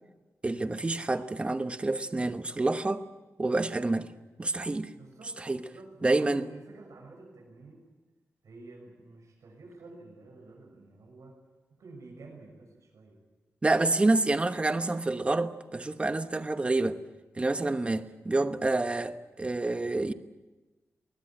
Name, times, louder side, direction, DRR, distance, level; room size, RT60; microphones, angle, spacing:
voice 1, 0.4-3.1 3.4-4.1 4.4-4.9 5.4-5.6 6.0-6.4 13.6-17.0 17.4-20.1, right 2 dB, 20° right, 1.1 m, -28 dB
voice 2, 4.9-7.9 8.4-11.4 11.8-13.2, right 3 dB, 80° right, 6.7 m, -50 dB
21.5 x 19.5 x 8.9 m
wide cardioid pair, 145°, 5 cm